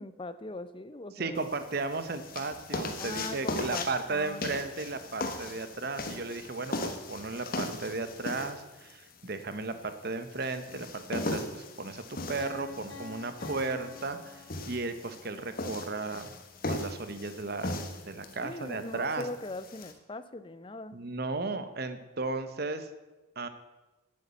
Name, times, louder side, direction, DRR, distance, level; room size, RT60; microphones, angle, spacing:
voice 1, 0.0-1.5 3.0-4.5 18.4-21.0, left 2 dB, 25° left, 13 dB, 0.5 m, -40 dB
voice 2, 1.2-16.3 16.7-17.8 18.1-19.3 20.9-22.9 23.4-23.5, right 3 dB, 50° right, 10 dB, 0.9 m, -35 dB
sound 1, 1.4-19.9, left 2 dB, 45° left, 1.2 m, -39 dB
Piano, 12.4-15.2, left 4 dB, 85° left, 3.3 m, -47 dB
8.7 x 8.3 x 8.2 m, 1.1 s
head